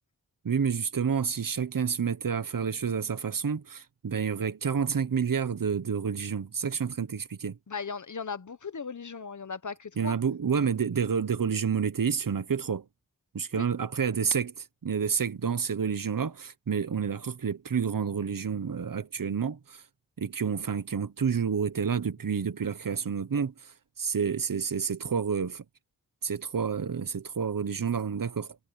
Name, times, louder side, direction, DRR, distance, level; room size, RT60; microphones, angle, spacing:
voice 1, 0.4-7.6 10.0-12.8 13.3-19.8 20.2-25.6 26.2-28.6, right 6 dB, 70° right, 1.0 m, -29 dB
voice 2, 7.7-10.2 13.5-13.7, left 5 dB, 55° left, 1.1 m, -37 dB
wide cardioid pair, 75°, 35 cm